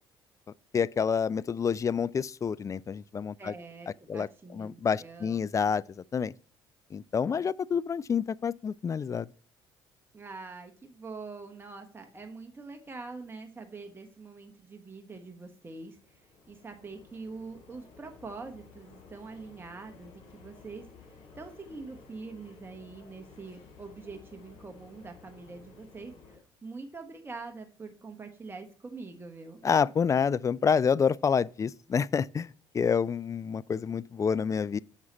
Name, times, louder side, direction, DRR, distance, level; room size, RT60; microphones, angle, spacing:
voice 1, 0.7-3.5 4.1-4.3 4.5-5.8 6.1-6.3 6.9-9.3 29.6-32.5 32.7-34.8, left 6 dB, 30° left, 0.3 m, -28 dB
voice 2, 3.4-5.8 10.1-29.6, right 3 dB, 20° right, 1.2 m, -44 dB
sound 1, 15.5-26.4, left 4 dB, 60° left, 3.7 m, -54 dB
7.3 x 6.2 x 4.1 m
hypercardioid pair, 60°, 11 cm